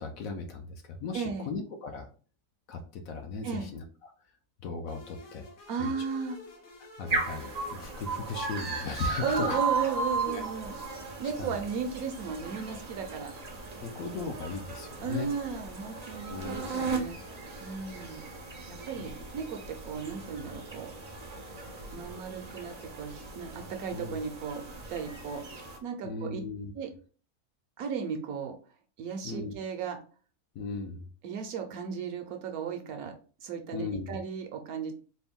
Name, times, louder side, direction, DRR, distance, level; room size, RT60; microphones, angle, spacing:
voice 1, 0.0-2.1 2.7-4.1 4.6-5.5 5.8-5.9 6.8-9.9 10.3-10.4 11.4-11.6 13.8-15.3 16.3-16.9 18.9-19.2 23.9-24.2 26.0-26.7 29.2-29.5 30.5-31.1 33.7-34.2, left 4 dB, 70° left, 4 dB, 0.9 m, -37 dB
voice 2, 1.1-1.5 3.4-3.7 5.7-6.4 9.2-10.8 11.2-13.3 15.0-17.2 17.6-18.3 18.7-20.9 21.9-24.6 24.9-25.4 25.8-26.4 26.8-26.9 27.8-28.6 29.0-30.0 31.2-33.1 33.4-35.0, right 6 dB, 70° right, 5 dB, 1.0 m, -35 dB
sound 1, 4.9-8.5, left 4 dB, 85° left, 1.7 m, -50 dB
sound 2, 7.1-25.8, right 4 dB, 50° right, 0.4 m, -36 dB
4.2 x 2.2 x 3.5 m, 0.39 s
omnidirectional pair, 1.7 m